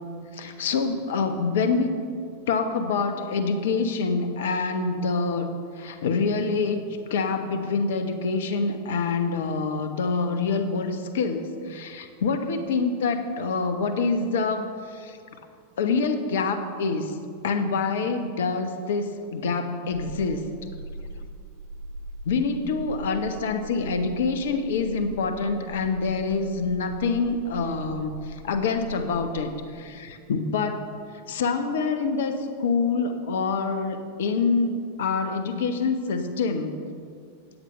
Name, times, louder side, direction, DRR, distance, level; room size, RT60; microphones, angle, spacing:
voice 1, 0.3-2.0 2.5-6.8 7.1-15.2 15.8-17.1 17.4-20.5 22.2-30.9 31.3-36.8, left 4 dB, 60° left, 8 dB, 1.1 m, -26 dB
sound 1, 19.9-29.3, right 1 dB, 80° left, 2.1 m, -40 dB
15.0 x 9.3 x 5.6 m, 2.3 s
figure-of-eight pair, 90°, 0 cm